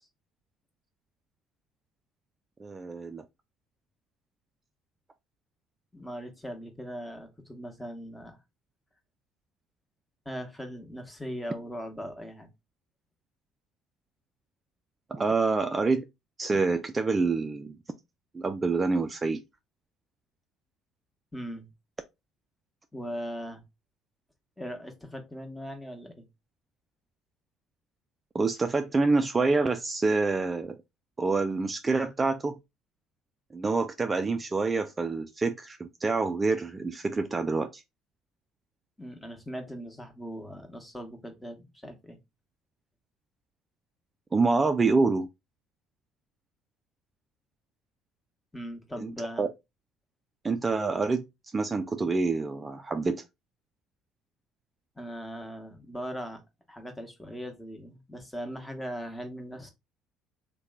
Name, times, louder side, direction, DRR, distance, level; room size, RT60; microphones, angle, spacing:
voice 1, 2.6-3.2 15.1-16.0 16.4-17.8 18.3-19.4 28.3-30.8 31.2-32.5 33.5-37.8 44.3-45.3 49.0-49.1 49.4-49.5 50.4-51.2 51.5-53.2, right 3 dB, 25° right, 0.3 m, -27 dB
voice 2, 5.9-8.4 10.2-12.5 21.3-21.7 22.9-23.6 24.6-26.3 39.0-42.2 48.5-49.5 55.0-56.4 56.7-59.7, equal, 10° left, 1.0 m, -39 dB
2.9 x 2.2 x 3.4 m
hypercardioid pair, 65°, 0 cm